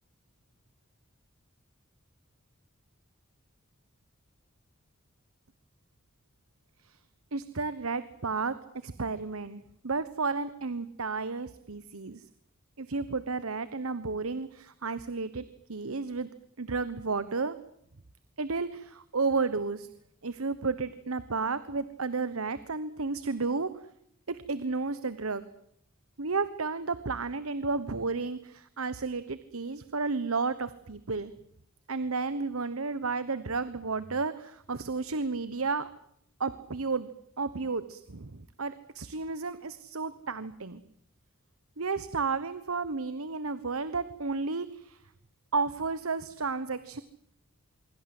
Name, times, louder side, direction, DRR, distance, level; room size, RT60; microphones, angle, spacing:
voice 1, 7.3-8.5 8.8-12.2 12.8-16.3 16.6-17.6 18.4-19.9 20.2-23.7 24.3-25.4 26.2-31.3 31.9-35.9 36.4-37.1 37.4-40.8 41.8-45.0 45.5-47.0, right 4 dB, 90° right, 14 dB, 1.2 m, -32 dB
26.0 x 23.0 x 7.9 m, 0.72 s
head